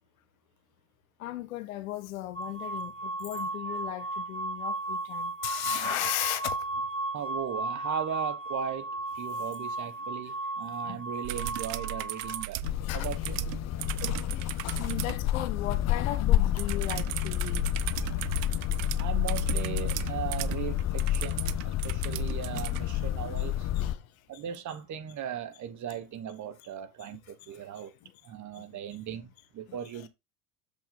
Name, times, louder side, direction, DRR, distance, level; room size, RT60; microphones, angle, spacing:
voice 1, 1.2-6.6 10.8-11.0 12.8-13.1 13.6-17.7 18.0-18.2 21.0-21.1 22.1-22.3 23.7-24.0 27.4-27.7 28.0-28.1 28.6-28.7 29.7-29.8, left 14 dB, 85° left, 1.0 m, -37 dB
sound 1, 2.3-12.5, right 2 dB, 15° left, 1.5 m, -35 dB
voice 2, 7.1-8.9 9.2-12.6 12.9-13.4 19.0-23.7 24.3-27.9 28.2-30.1, right 9 dB, 45° right, 1.4 m, -37 dB
sound 2, 11.2-15.2 16.6-22.8 24.5-24.6, right 19 dB, 70° right, 0.6 m, -37 dB
sound 3, 12.6-23.9, left 13 dB, 40° left, 0.7 m, -29 dB
7.1 x 5.4 x 3.7 m
hypercardioid pair, 85°, 41 cm